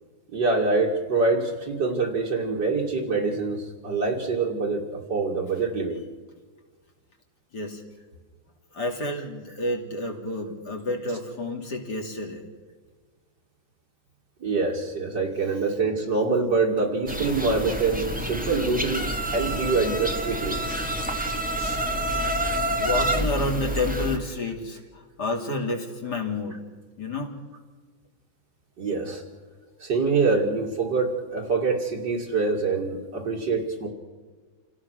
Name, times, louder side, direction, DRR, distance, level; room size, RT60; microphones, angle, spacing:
voice 1, 0.3-6.0 14.4-20.6 21.5-21.8 28.8-29.2 29.8-33.9, right 3 dB, 60° right, 1 dB, 2.9 m, -25 dB
voice 2, 8.7-12.5 22.8-26.6 27.0-27.4, left 2 dB, 55° left, 2 dB, 3.3 m, -30 dB
sound 1, 17.1-24.2, right 1 dB, 5° right, 1.7 m, -28 dB
28.0 x 17.0 x 6.3 m, 1.4 s
omnidirectional pair, 2.2 m